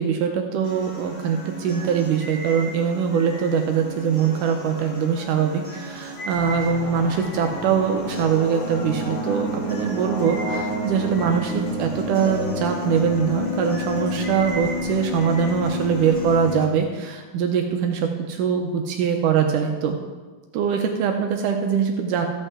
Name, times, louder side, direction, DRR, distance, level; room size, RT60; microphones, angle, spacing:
voice 1, 0.0-20.0 20.5-22.3, right 7 dB, 75° right, 4 dB, 2.0 m, -23 dB
sound 1, 0.6-16.6, equal, 30° left, 1.1 m, -32 dB
sound 2, 6.3-16.5, left 1 dB, 80° left, 3.7 m, -32 dB
14.0 x 8.1 x 3.6 m, 1.3 s
omnidirectional pair, 4.3 m